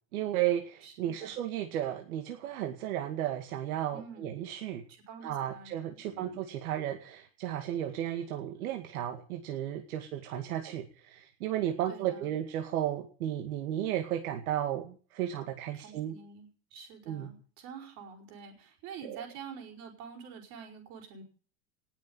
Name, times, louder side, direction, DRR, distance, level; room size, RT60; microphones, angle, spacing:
voice 1, 0.1-4.8 5.2-16.1 17.1-17.3 19.0-19.2, right 11 dB, 65° right, 4 dB, 2.3 m, -34 dB
voice 2, 0.8-1.4 3.9-4.3 5.1-6.4 11.9-12.3 15.7-21.2, right 6 dB, 35° right, 3 dB, 5.1 m, -47 dB
19.0 x 7.5 x 8.9 m, 0.41 s
supercardioid pair, 180°, 47 cm